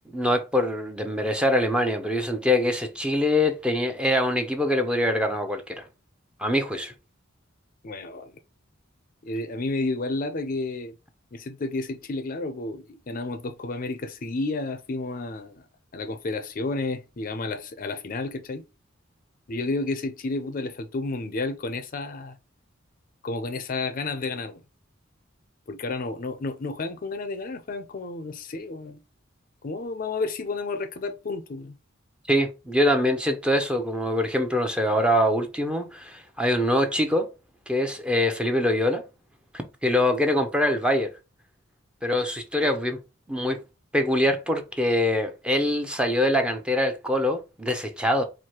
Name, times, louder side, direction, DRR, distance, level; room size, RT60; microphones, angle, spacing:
voice 1, 0.1-5.8 6.4-6.9 32.3-37.3 37.7-39.0 39.5-41.1 42.0-43.0 43.3-43.6 43.9-48.2, left 1 dB, 5° right, 0.6 m, -24 dB
voice 2, 7.8-8.3 9.2-10.9 11.3-15.6 15.9-18.6 19.5-22.4 23.2-24.6 25.7-29.0 29.6-31.7, left 3 dB, 45° left, 0.5 m, -31 dB
4.7 x 2.0 x 4.4 m
head